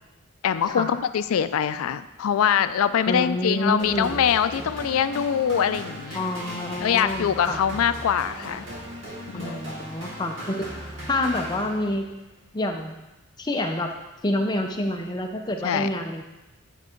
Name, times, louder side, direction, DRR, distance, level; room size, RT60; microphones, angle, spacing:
voice 1, 0.4-6.2 6.8-8.7 9.3-9.6 15.6-15.9, left 8 dB, 85° left, 13 dB, 0.4 m, -23 dB
voice 2, 3.1-4.2 6.1-7.6 9.3-10.8 11.1-12.1 12.5-12.9 13.4-13.9 14.2-16.2, left 1 dB, 20° left, 3 dB, 0.6 m, -27 dB
sound 1, 3.8-12.1, right 1 dB, 60° right, 2.0 m, -38 dB
10.0 x 3.6 x 4.4 m, 1.0 s
head